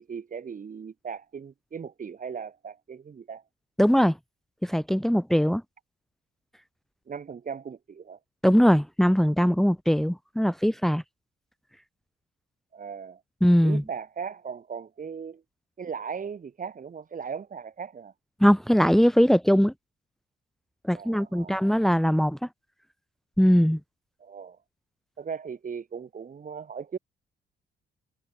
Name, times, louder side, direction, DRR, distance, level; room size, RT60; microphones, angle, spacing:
voice 1, 0.0-3.4 7.1-8.2 12.7-13.2 13.6-15.4 15.8-18.1 20.9-21.6 24.2-24.6 25.2-27.0, right 6 dB, 40° right, 2.7 m, -38 dB
voice 2, 3.8-4.2 4.6-5.6 8.4-11.0 13.4-13.8 18.4-19.7 20.8-22.4 23.4-23.8, equal, ahead, 1.8 m, -21 dB
cardioid pair, 90°, 20 cm